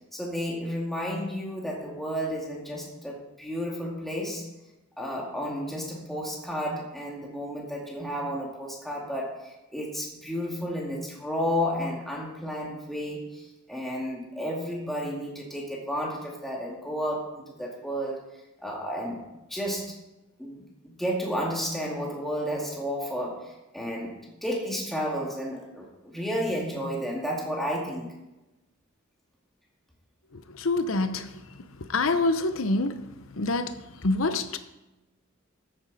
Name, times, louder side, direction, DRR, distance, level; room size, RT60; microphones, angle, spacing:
voice 1, 0.1-4.4 5.0-18.2 18.6-19.9 20.4-28.1, equal, ahead, -3 dB, 2.3 m, -32 dB
voice 2, 30.3-31.4 31.8-33.0 33.3-34.6, left 2 dB, 85° left, 10 dB, 0.9 m, -26 dB
13.5 x 9.1 x 4.2 m, 1.0 s
head